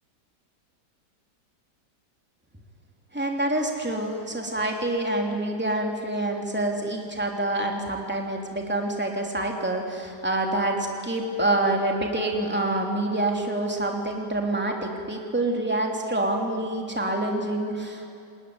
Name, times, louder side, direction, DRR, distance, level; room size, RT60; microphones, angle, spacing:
voice 1, 3.1-18.1, right 1 dB, 5° right, 1 dB, 3.1 m, -27 dB
30.0 x 20.5 x 9.8 m, 2.5 s
omnidirectional pair, 1.8 m